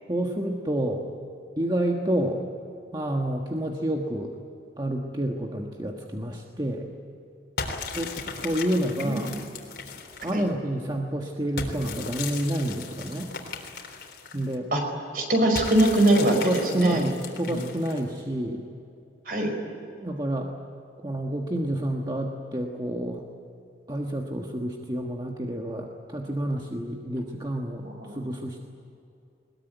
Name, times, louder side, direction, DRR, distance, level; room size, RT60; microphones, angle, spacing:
voice 1, 0.1-1.1 1.6-2.4 2.9-4.3 4.8-6.9 7.9-8.1 8.4-9.3 10.2-13.3 14.3-14.7 16.3-18.6 20.0-20.5 21.0-23.2 23.9-27.9 28.1-28.6, right 1 dB, 25° right, 1 dB, 1.4 m, -29 dB
sound 1, 7.6-10.5 11.6-14.6 15.5-18.2, left 4 dB, 60° left, 3.7 m, -37 dB
voice 2, 9.0-9.3 10.3-10.4 14.7-14.8 15.1-17.0 17.5-17.6 19.3-19.5 27.9-28.3, right 1 dB, 50° right, 4 dB, 5.2 m, -23 dB
22.0 x 21.5 x 9.4 m, 2.6 s
head